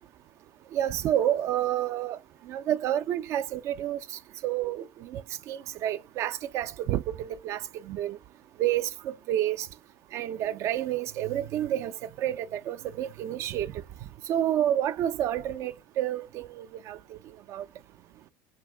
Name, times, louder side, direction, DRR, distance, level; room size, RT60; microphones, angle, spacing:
voice 1, 0.7-2.2 2.5-4.0 4.4-8.2 8.6-9.7 10.1-13.7 14.3-17.2 17.5-17.6, right 11 dB, 55° right, 0.3 m, -29 dB
3.6 x 2.7 x 3.2 m
supercardioid pair, 90°, 6 cm